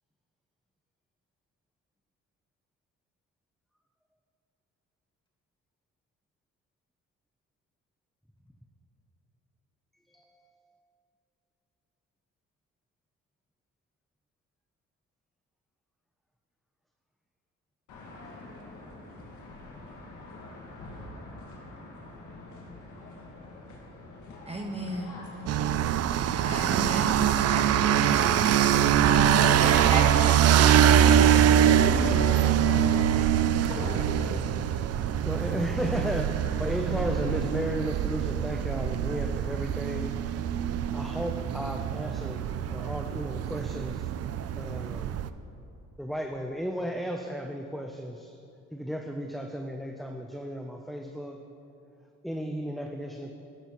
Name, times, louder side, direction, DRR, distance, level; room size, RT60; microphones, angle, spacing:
sound 1, 17.9-37.9, left 2 dB, 75° left, 1.9 m, -44 dB
voice 1, 24.5-25.2 26.4-28.7 29.0-30.9, right 2 dB, 20° right, 1 dB, 1.1 m, -33 dB
sound 2, 25.5-45.3, right 9 dB, 55° right, 0.4 m, -24 dB
voice 2, 32.7-33.3 33.7-34.4, equal, 15° left, -2 dB, 2.2 m, -43 dB
voice 3, 35.3-36.3 36.6-40.1 40.9-42.4 42.7-44.1 44.6-45.2 46.0-48.3 48.7-51.4 52.2-53.3, equal, ahead, 2 dB, 0.6 m, -34 dB
13.0 x 11.0 x 3.0 m, 2.6 s
cardioid pair, 90°, 30 cm